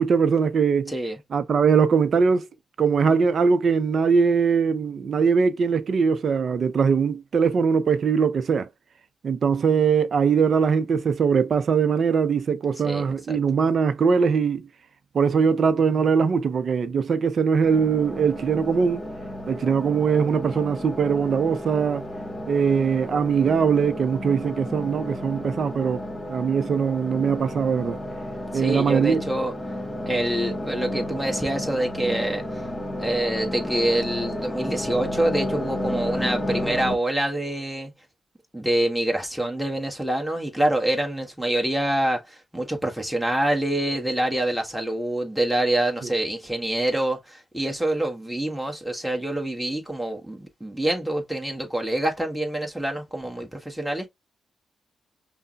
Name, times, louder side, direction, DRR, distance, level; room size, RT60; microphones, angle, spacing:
voice 1, 0.0-0.9 1.3-2.5 2.8-8.7 9.2-14.7 15.1-19.0 19.5-22.1 22.5-26.0 26.3-28.0 28.5-29.2, right 6 dB, 60° right, 0.5 m, -21 dB
voice 2, 0.9-1.2 12.8-13.4 28.5-29.5 30.1-32.4 33.0-37.9 38.5-54.1, right 1 dB, ahead, 1.4 m, -26 dB
sound 1, 17.6-37.0, left 1 dB, 15° left, 1.6 m, -32 dB
5.4 x 2.1 x 2.4 m
hypercardioid pair, 45°, 0 cm